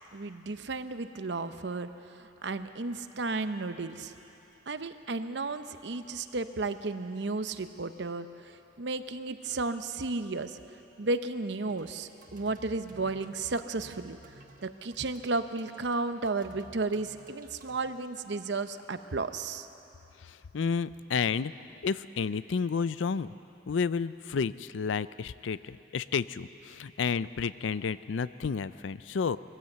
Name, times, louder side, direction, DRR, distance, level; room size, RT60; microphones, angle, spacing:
voice 1, 0.1-1.9 2.2-4.1 4.7-8.3 8.8-10.6 11.0-14.2 14.6-19.7, right 3 dB, 60° right, 10 dB, 0.8 m, -33 dB
sound 1, 11.6-17.8, right 1 dB, 45° right, 1.4 m, -54 dB
voice 2, 20.3-21.5 21.8-23.3 23.7-29.4, left 5 dB, 80° left, 16 dB, 0.4 m, -31 dB
21.5 x 15.0 x 8.0 m, 3.0 s
head